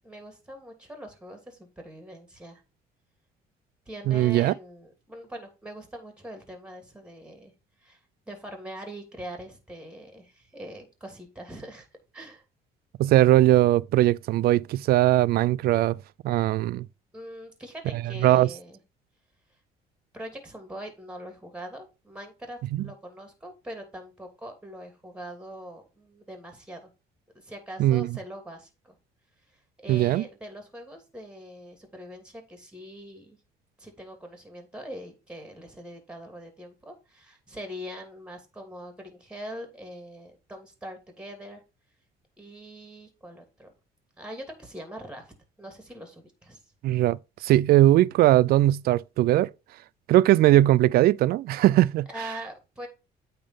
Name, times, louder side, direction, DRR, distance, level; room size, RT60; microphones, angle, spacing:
voice 1, 0.0-2.6 3.9-7.5 7.8-8.0 8.3-11.9 12.1-12.4 17.1-18.8 20.1-26.8 27.3-29.0 29.4-33.4 33.8-41.6 42.4-43.7 44.2-46.6 52.1-52.9, equal, 5° right, 2.6 m, -42 dB
voice 2, 4.1-4.5 13.0-16.0 16.2-16.9 18.2-18.5 22.7-22.9 27.8-28.1 29.9-30.2 46.8-49.5 50.1-52.1, right 14 dB, 65° right, 0.4 m, -20 dB
8.7 x 3.7 x 5.3 m
cardioid pair, 110°, 17 cm